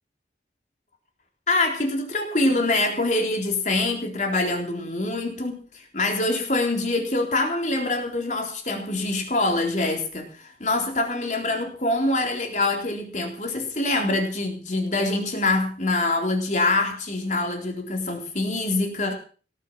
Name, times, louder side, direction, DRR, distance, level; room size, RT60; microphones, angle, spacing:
voice 1, 1.5-19.1, left 2 dB, 40° left, 2 dB, 3.8 m, -25 dB
19.0 x 8.2 x 7.4 m, 0.39 s
head